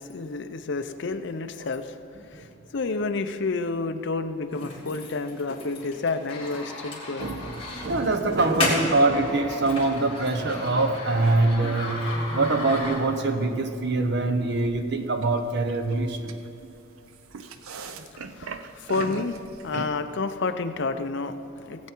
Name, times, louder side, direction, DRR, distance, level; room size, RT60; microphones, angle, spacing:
voice 1, 0.0-2.0 2.3-7.3 18.3-19.4 19.6-21.9, left 3 dB, 55° left, 9 dB, 0.5 m, -30 dB
sound 1, 4.5-13.3, left 2 dB, 25° left, 2.3 m, -34 dB
voice 2, 7.2-7.6 7.8-16.3 18.0-18.1, right 2 dB, 50° right, 7 dB, 0.9 m, -24 dB
sound 2, 12.0-19.9, right 4 dB, 75° right, 0.6 m, -41 dB
17.5 x 8.3 x 4.5 m, 2.9 s
head